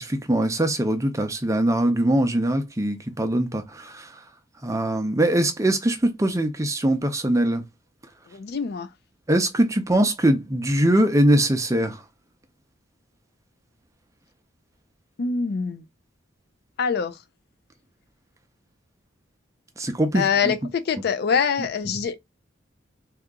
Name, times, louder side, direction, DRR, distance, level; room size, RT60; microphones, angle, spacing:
voice 1, 0.0-4.1 4.6-7.6 9.3-12.0 19.8-20.2, right 1 dB, 15° right, 0.5 m, -22 dB
voice 2, 8.3-8.9 15.2-15.8 16.8-17.2 20.1-22.2, left 6 dB, 55° left, 0.4 m, -24 dB
2.8 x 2.4 x 3.5 m
head